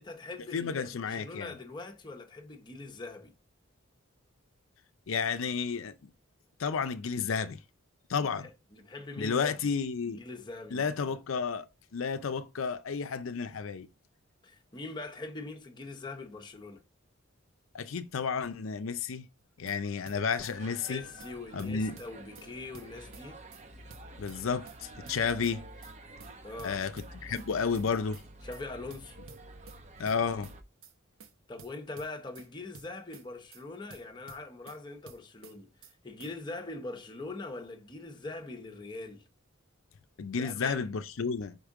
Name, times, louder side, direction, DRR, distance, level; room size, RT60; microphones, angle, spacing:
voice 1, 0.0-3.3 8.2-9.6 10.0-11.2 14.4-16.8 20.9-23.4 26.4-26.8 28.4-29.2 31.5-35.7 36.0-39.2 40.4-40.9, left 3 dB, 20° left, 0.8 m, -42 dB
voice 2, 0.5-1.5 5.1-6.1 6.6-7.6 8.1-8.5 9.2-10.2 10.7-11.7 11.9-13.9 17.7-19.3 19.6-21.1 21.5-22.0 24.2-25.6 26.6-28.2 30.0-30.5 40.2-41.6, left 5 dB, 70° left, 0.5 m, -32 dB
sound 1, 19.4-19.8 20.1-20.5 20.8-20.9 21.2-21.3 21.6-22.5 22.7-23.2 23.5-23.6 23.9-24.8 25.1-25.5 25.8-25.9 26.2-26.3 26.6-27.5 27.7-28.2 28.5-28.6 28.9-29.8 30.1-30.5 30.8-30.9 31.2-31.3 31.6-32.5 32.7-33.2 33.5-33.6 33.9-34.8 35.1-35.5 35.8-35.9 36.2-36.3, right 5 dB, 70° right, 0.9 m, -52 dB
sound 2, 20.5-30.6, right 1 dB, 35° right, 0.8 m, -49 dB
5.3 x 5.0 x 3.6 m
head